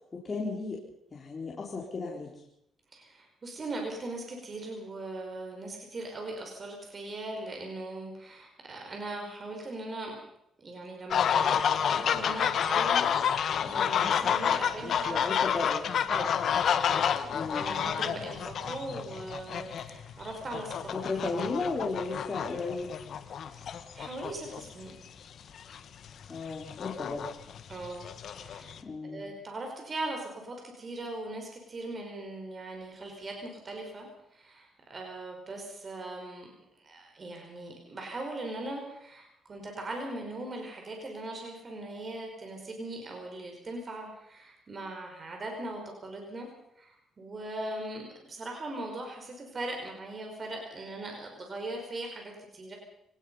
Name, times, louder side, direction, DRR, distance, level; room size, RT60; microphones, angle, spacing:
voice 1, 0.1-0.8 1.1-2.4 14.8-15.8 17.3-17.7 20.9-22.9 26.3-27.3 28.8-29.2, left 3 dB, 30° left, -3 dB, 4.1 m, -34 dB
voice 2, 2.9-10.1 10.6-15.3 16.1-16.4 16.9-20.9 23.3-23.7 23.9-24.9 27.7-28.7 29.0-36.5 36.8-46.5 46.8-52.8, right 2 dB, 35° right, 2 dB, 5.5 m, -40 dB
sound 1, 11.1-24.9 25.6-25.8 26.0-28.8, left 8 dB, 65° left, 1.8 m, -29 dB
24.5 x 19.0 x 5.7 m, 0.80 s
cardioid pair, 90°, 0 cm